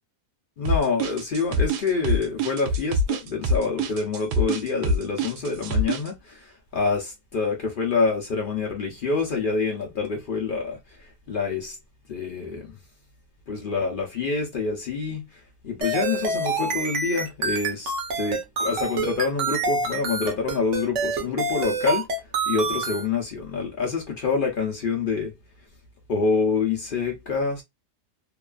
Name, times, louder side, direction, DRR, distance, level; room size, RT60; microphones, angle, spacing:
voice 1, 0.6-11.8 12.1-12.8 13.5-25.3 26.1-27.6, left 4 dB, 65° left, 0.5 m, -27 dB
sound 1, 0.7-6.1, equal, 85° right, 1.1 m, -24 dB
sound 2, 15.8-23.1, right 3 dB, 60° right, 0.9 m, -27 dB
2.8 x 2.4 x 2.2 m
omnidirectional pair, 1.7 m